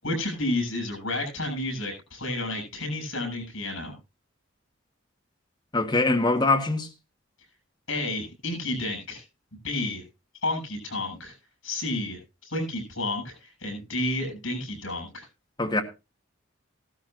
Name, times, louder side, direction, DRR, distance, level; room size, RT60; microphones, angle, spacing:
voice 1, 0.0-4.0 7.9-9.2 9.6-10.0 10.4-11.3 11.6-15.3, left 2 dB, 75° left, 7.4 m, -31 dB
voice 2, 5.7-6.9 15.6-15.8, left 2 dB, 20° left, 1.5 m, -23 dB
16.5 x 12.5 x 2.6 m
head